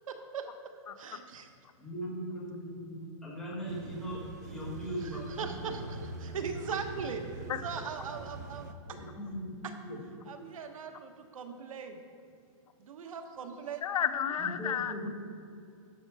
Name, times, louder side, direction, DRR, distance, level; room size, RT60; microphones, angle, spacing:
voice 1, 0.1-0.5 1.0-1.5 5.4-7.2 7.6-9.0 10.3-12.0 12.8-13.8, right 5 dB, 70° right, 5 dB, 1.2 m, -40 dB
voice 2, 1.8-5.9 8.9-10.1 14.4-15.1, equal, 5° left, -7 dB, 1.5 m, -39 dB
sound 1, 3.7-8.7, right 4 dB, 30° right, 0.4 m, -43 dB
voice 3, 13.8-14.9, left 9 dB, 85° left, 9 dB, 0.8 m, -31 dB
11.0 x 6.5 x 4.8 m, 2.4 s
hypercardioid pair, 180°, 18 cm